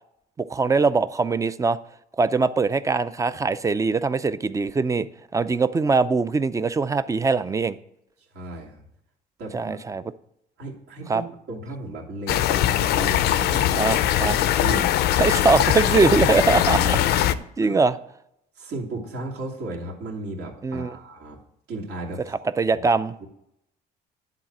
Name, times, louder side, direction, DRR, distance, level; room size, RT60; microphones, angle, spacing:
voice 1, 0.4-1.8 2.2-5.1 5.3-7.7 9.5-10.0 11.1-11.2 13.8-14.4 15.2-17.0 17.6-17.9 20.6-21.0 22.6-23.1, right 4 dB, 20° right, 14 dB, 0.5 m, -22 dB
voice 2, 8.2-8.8 9.4-9.8 10.6-15.2 16.6-17.3 17.6-17.9 18.6-21.4 21.7-22.4 22.8-22.9 23.2-23.3, right 2 dB, 75° right, -2 dB, 2.6 m, -35 dB
sound 1, 12.3-17.3, left 12 dB, 75° left, 0.5 m, -21 dB
10.5 x 4.0 x 7.3 m, 0.77 s
cardioid pair, 110°, 17 cm